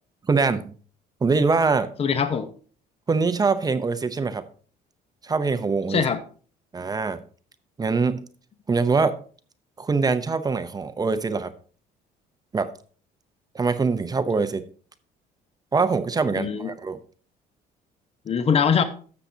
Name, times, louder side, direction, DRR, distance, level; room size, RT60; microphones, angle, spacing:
voice 1, 0.3-0.7 1.2-1.9 3.1-4.4 5.2-6.0 6.7-7.2 7.8-8.2 8.7-9.2 9.8-11.5 12.5-12.7 13.5-14.6 15.7-17.0, right 4 dB, 25° right, 11 dB, 0.6 m, -23 dB
voice 2, 2.0-2.5 5.9-6.2 16.3-16.7 18.3-18.8, left 6 dB, 35° left, 10 dB, 0.8 m, -22 dB
13.0 x 7.0 x 2.7 m, 0.41 s
cardioid pair, 110°, 17 cm